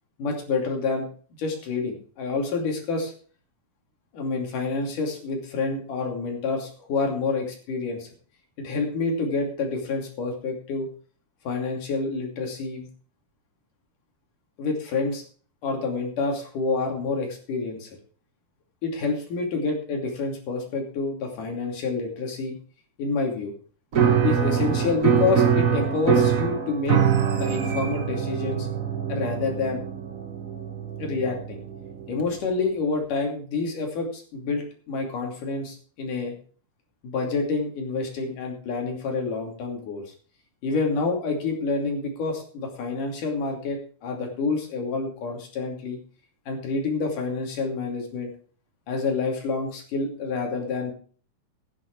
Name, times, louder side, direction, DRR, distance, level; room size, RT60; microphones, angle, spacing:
voice 1, 0.2-1.1 1.4-3.1 4.1-8.1 8.6-10.9 11.4-12.9 14.6-15.2 15.6-17.9 18.8-22.6 23.0-23.5 24.2-27.0 27.3-28.7 29.1-29.8 31.0-31.6 32.1-36.3 37.0-40.1 40.6-46.0 46.5-48.3 48.9-50.9, left 4 dB, 85° left, 2 dB, 4.4 m, -28 dB
Piano, 23.9-32.4, right 7 dB, 70° right, 0.7 m, -24 dB
13.5 x 9.9 x 4.7 m, 0.42 s
omnidirectional pair, 3.6 m